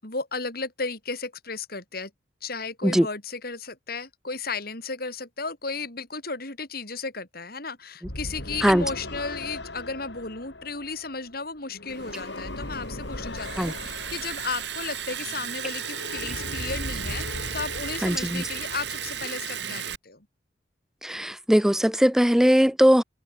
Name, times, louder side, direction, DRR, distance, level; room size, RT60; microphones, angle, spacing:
voice 1, 0.0-2.1 2.4-20.3, left 4 dB, 55° left, 5.4 m, -34 dB
sound 1, 8.0-19.2, left 1 dB, 75° left, 4.3 m, -38 dB
Liquid, 11.9-20.0, right 8 dB, 75° right, 4.3 m, -35 dB
voice 2, 18.0-18.4 21.0-23.0, equal, 5° right, 0.5 m, -20 dB
head